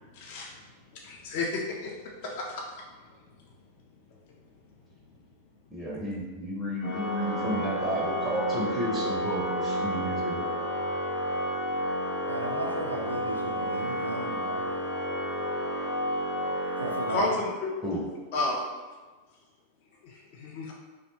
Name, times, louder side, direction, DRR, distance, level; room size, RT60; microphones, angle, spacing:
voice 1, 0.1-0.5 1.0-1.9 2.2-2.6 17.1-17.5 18.3-18.7 20.0-20.7, left 2 dB, 50° left, 0.4 m, -31 dB
voice 2, 5.7-10.5 17.8-18.1, equal, 15° right, 0.4 m, -32 dB
Organ, 6.8-17.8, equal, 65° left, 0.8 m, -31 dB
voice 3, 12.3-14.7 16.8-17.4, right 1 dB, 80° right, 0.3 m, -35 dB
2.6 x 2.1 x 2.9 m
figure-of-eight pair, 90°, 0 cm